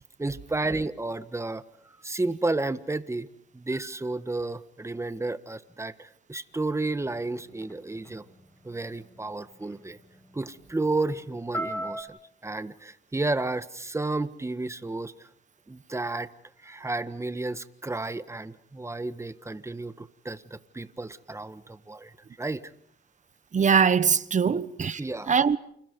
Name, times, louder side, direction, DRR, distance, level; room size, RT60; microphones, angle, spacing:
voice 1, 0.2-3.3 3.5-8.2 8.6-10.0 10.3-12.2 12.4-15.3 15.7-16.3 16.6-22.6 24.4-24.6 25.0-25.3, right 2 dB, 15° right, 1.5 m, -32 dB
sound 1, 7.1-12.0, right 1 dB, 10° left, 6.4 m, -39 dB
voice 2, 23.5-25.0 25.3-25.6, right 6 dB, 40° right, 1.2 m, -22 dB
29.0 x 28.5 x 5.4 m
cardioid pair, 90°, 20 cm